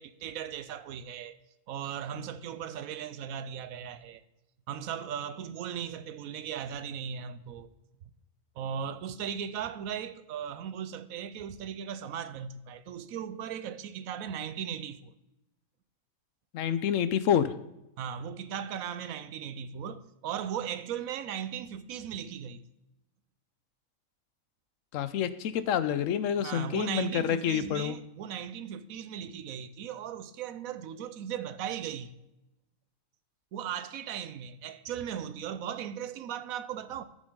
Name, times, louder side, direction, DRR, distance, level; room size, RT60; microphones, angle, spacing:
voice 1, 0.0-1.4 1.7-4.2 4.7-7.7 8.6-15.1 18.0-22.6 26.4-32.1 33.5-37.0, right 8 dB, 90° right, 1.1 m, -37 dB
voice 2, 16.5-17.5 24.9-28.0, left 9 dB, 75° left, 0.9 m, -28 dB
14.0 x 5.2 x 3.7 m
omnidirectional pair, 1.4 m